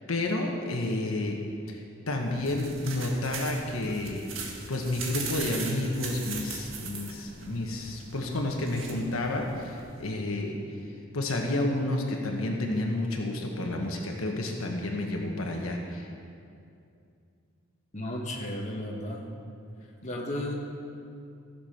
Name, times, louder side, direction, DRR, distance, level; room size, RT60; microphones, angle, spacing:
voice 1, 0.1-1.4 1.7-10.6 11.1-16.1, left 2 dB, 85° left, 1 dB, 1.3 m, -30 dB
sound 1, 2.1-10.0, right 4 dB, 65° right, 1.7 m, -40 dB
voice 2, 17.9-19.3 20.0-20.5, left 1 dB, 35° left, -1 dB, 1.6 m, -34 dB
15.0 x 7.2 x 5.8 m, 2.5 s
head